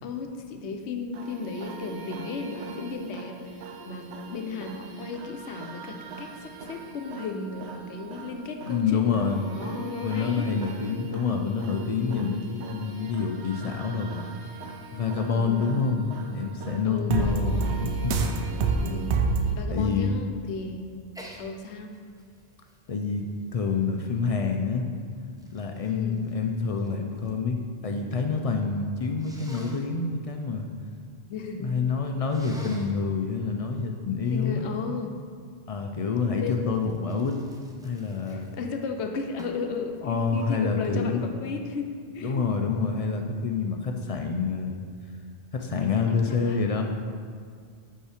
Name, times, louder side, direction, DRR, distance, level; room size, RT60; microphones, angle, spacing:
voice 1, 0.0-10.5 12.0-12.3 15.3-15.7 16.8-17.8 18.8-19.2 19.5-21.0 21.4-21.9 25.9-26.2 31.3-31.7 34.3-35.2 36.4-36.9 38.3-42.5 45.8-46.6, left 4 dB, 80° left, 5 dB, 0.9 m, -35 dB
sound 1, 1.1-19.6, right 4 dB, 85° right, 0.9 m, -34 dB
voice 2, 8.7-9.5 10.0-14.2 14.9-18.2 19.7-20.1 22.9-23.2 23.5-24.8 25.5-30.7 31.5-34.7 35.7-37.4 37.8-38.5 40.0-41.3 42.2-44.8 45.5-46.8, left 5 dB, 60° left, 4 dB, 0.3 m, -27 dB
Sneeze, 21.1-21.4 21.9-24.3 25.0-27.4 27.7-28.3 29.2-29.8 32.3-33.0 36.5-38.8 39.4-39.7, equal, 5° right, 0.5 m, -48 dB
5.3 x 4.8 x 4.9 m, 2.2 s
omnidirectional pair, 1.1 m